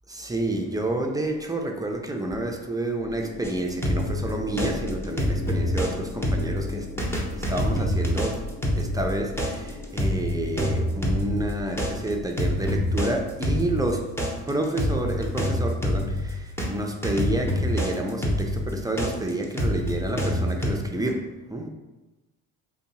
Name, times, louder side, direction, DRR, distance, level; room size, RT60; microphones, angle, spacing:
voice 1, 0.1-6.9 7.3-14.1 14.5-21.7, right 1 dB, 10° right, 2 dB, 0.4 m, -29 dB
sound 1, 3.0-13.4, left 2 dB, 40° left, 0.5 m, -38 dB
sound 2, 3.4-5.9 6.2-16.7 17.0-20.7, left 1 dB, 5° left, 0.8 m, -26 dB
2.7 x 2.3 x 4.0 m, 1.1 s
supercardioid pair, 70°, 36 cm